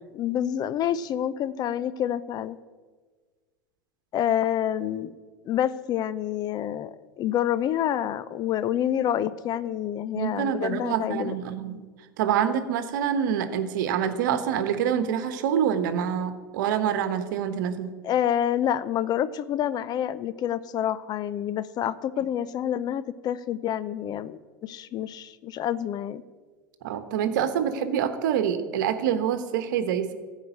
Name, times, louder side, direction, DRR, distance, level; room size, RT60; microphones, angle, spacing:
voice 1, 0.1-2.6 4.1-5.1 5.5-11.4 18.0-26.2, left 10 dB, 40° left, 15 dB, 0.5 m, -28 dB
voice 2, 10.1-11.8 12.2-17.9 26.8-30.1, right 8 dB, 65° right, 10 dB, 1.2 m, -26 dB
14.5 x 4.9 x 8.1 m, 1.4 s
hypercardioid pair, 85°, 11 cm